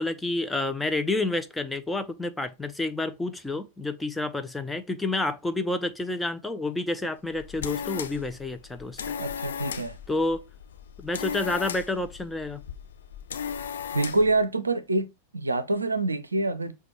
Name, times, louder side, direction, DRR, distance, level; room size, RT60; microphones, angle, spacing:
voice 1, 0.0-9.0 10.1-10.4 11.0-12.6, left 2 dB, 5° left, 0.5 m, -29 dB
sound 1, 7.2-14.4, left 7 dB, 65° left, 0.4 m, -36 dB
voice 2, 9.2-10.0 13.9-15.1 15.3-16.7, right 2 dB, 80° right, 0.4 m, -26 dB
5.9 x 2.3 x 2.9 m
figure-of-eight pair, 90°, 0 cm